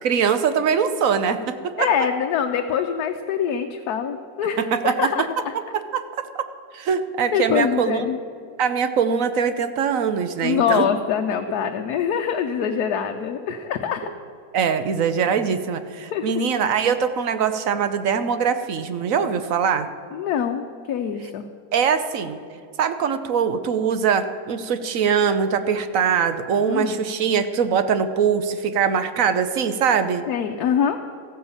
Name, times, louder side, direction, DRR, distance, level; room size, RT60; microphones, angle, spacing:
voice 1, 0.0-1.9 4.6-5.1 5.9-6.4 6.7-8.0 8.6-10.9 14.5-19.9 21.7-22.4 22.8-30.2, right 6 dB, 60° right, 10 dB, 1.1 m, -22 dB
voice 2, 1.8-5.5 7.3-8.2 10.4-14.1 16.1-16.3 20.1-21.4 26.6-27.1 30.3-31.0, left 8 dB, 75° left, 4 dB, 1.2 m, -24 dB
14.5 x 9.4 x 7.2 m, 2.3 s
omnidirectional pair, 1.7 m